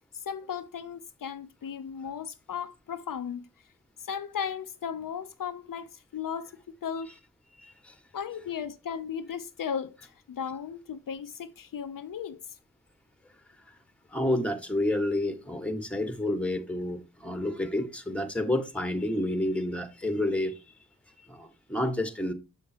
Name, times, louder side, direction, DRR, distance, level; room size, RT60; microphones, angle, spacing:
voice 1, 0.1-3.5 4.0-6.5 6.8-7.1 8.1-12.6, left 7 dB, 70° left, 0.6 m, -36 dB
voice 2, 7.6-7.9 14.1-20.6 21.3-22.3, left 1 dB, 5° left, 1.4 m, -29 dB
7.0 x 6.5 x 2.8 m
cardioid pair, 45°, 34 cm